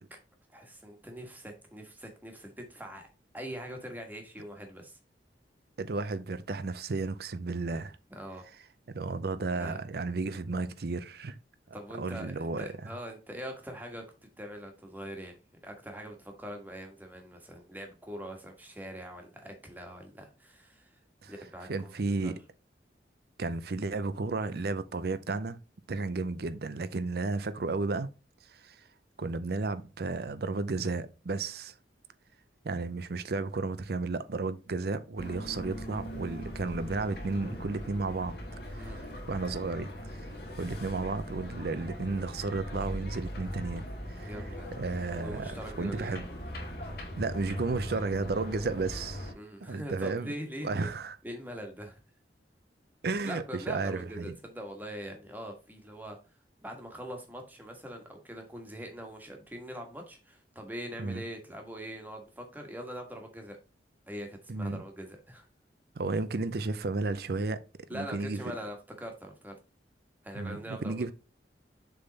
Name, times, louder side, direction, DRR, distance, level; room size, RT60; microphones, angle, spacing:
voice 1, 0.5-3.1 3.3-5.0 8.1-8.4 9.5-9.8 11.7-14.1 14.4-21.0 21.2-22.3 38.7-39.0 44.2-44.7 45.2-46.1 49.3-50.9 51.2-52.0 53.2-56.2 56.6-63.6 64.1-65.5 67.9-69.6 70.2-71.1, equal, 10° right, 1.4 m, -43 dB
voice 2, 5.8-8.0 8.9-11.4 12.0-12.7 21.2-21.3 21.7-22.4 23.4-25.6 25.9-28.1 28.5-28.8 29.2-31.7 32.6-38.4 38.7-39.9 40.1-40.3 40.6-44.3 44.8-46.2 47.2-49.3 49.6-50.3 50.6-51.2 53.0-54.3 61.0-61.2 64.5-64.8 66.0-67.6 67.9-68.4 70.3-71.1, right 3 dB, 60° right, 0.5 m, -33 dB
sound 1, 35.2-49.3, equal, 60° left, 2.3 m, -40 dB
6.8 x 3.7 x 4.0 m
head